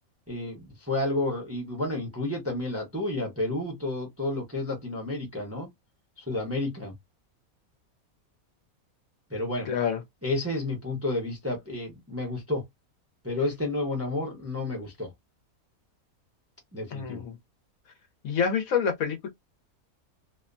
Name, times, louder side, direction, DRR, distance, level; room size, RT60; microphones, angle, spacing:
voice 1, 0.3-5.7 6.2-6.9 9.3-9.7 10.2-12.7 13.2-15.1 16.7-17.2, left 2 dB, 15° right, 0.6 m, -31 dB
voice 2, 9.7-10.0 16.9-17.4 18.2-19.3, left 7 dB, 70° left, 1.1 m, -27 dB
2.8 x 2.1 x 2.5 m
omnidirectional pair, 1.6 m